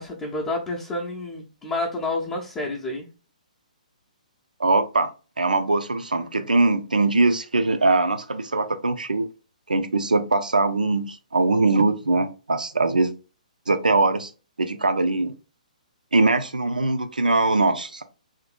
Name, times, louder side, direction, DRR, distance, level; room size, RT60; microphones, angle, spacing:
voice 1, 0.0-3.1, left 2 dB, 20° left, -3 dB, 0.5 m, -29 dB
voice 2, 4.6-5.1 5.4-9.3 9.7-13.1 13.7-14.3 14.6-15.3 16.1-18.0, right 3 dB, 85° right, 9 dB, 0.4 m, -21 dB
2.8 x 2.5 x 2.4 m, 0.34 s
figure-of-eight pair, 130°, 4 cm